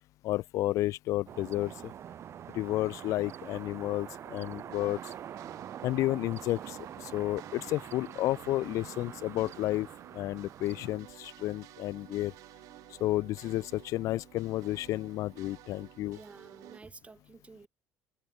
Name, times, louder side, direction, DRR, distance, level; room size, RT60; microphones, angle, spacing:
voice 1, 0.2-1.7 2.5-5.1 5.8-9.9 10.1-12.3 13.0-16.2, left 16 dB, 60° left, 0.4 m, -31 dB
sound 1, 1.3-11.0, right 10 dB, 50° right, 0.8 m, -45 dB
sound 2, 4.7-16.8, right 17 dB, 65° right, 2.2 m, -53 dB
voice 2, 16.1-17.7, right 3 dB, 20° right, 1.5 m, -51 dB
hypercardioid pair, 70°, 6 cm